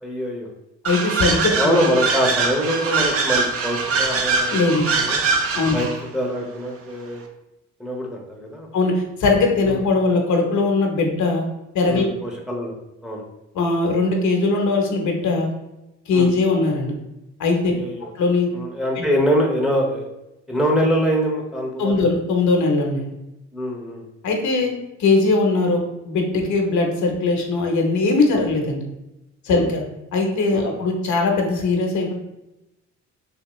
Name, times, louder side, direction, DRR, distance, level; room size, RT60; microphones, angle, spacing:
voice 1, 0.0-0.5 1.5-4.7 5.0-5.2 5.7-5.9 6.1-7.2 7.8-8.7 9.7-9.8 11.9-13.2 16.1-16.3 17.7-18.1 18.5-20.1 20.5-22.0 23.5-24.0 28.3-28.5 29.5-29.7 30.5-30.7, equal, ahead, -1 dB, 0.7 m, -24 dB
voice 2, 0.8-1.8 4.5-4.8 5.5-5.7 8.7-11.5 11.7-12.0 13.5-15.5 16.1-16.9 17.4-17.7 18.2-18.5 19.0-19.1 21.8-23.1 24.2-24.7 25.0-28.8 29.4-29.8 30.1-32.1, left 3 dB, 70° left, 2 dB, 0.9 m, -20 dB
sound 1, 0.8-6.0, right 4 dB, 50° right, 0.6 m, -22 dB
3.5 x 2.8 x 3.0 m, 0.94 s
cardioid pair, 90°, 30 cm